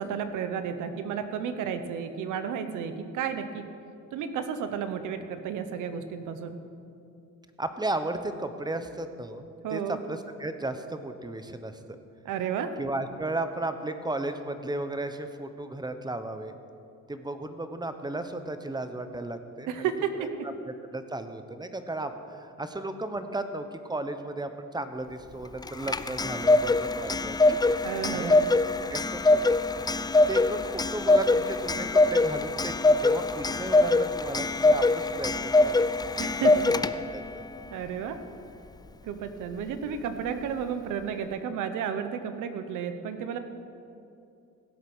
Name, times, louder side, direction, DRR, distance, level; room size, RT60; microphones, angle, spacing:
voice 1, 0.0-3.7 4.1-6.6 9.6-10.0 12.2-12.7 19.7-20.3 27.8-28.5 36.2-36.7 37.7-38.2 39.0-43.4, right 7 dB, 90° right, 9 dB, 1.0 m, -32 dB
voice 2, 7.6-9.4 9.7-12.0 12.8-16.5 17.1-19.9 20.2-20.3 20.6-27.8 28.1-28.3 28.8-29.6 30.3-35.9 36.4-36.8 37.1-37.2, right 2 dB, 15° right, 9 dB, 1.0 m, -35 dB
Clock, 25.6-37.2, left 2 dB, 15° left, 0.4 m, -23 dB
17.0 x 8.1 x 6.2 m, 2.6 s
cardioid pair, 90°, 30 cm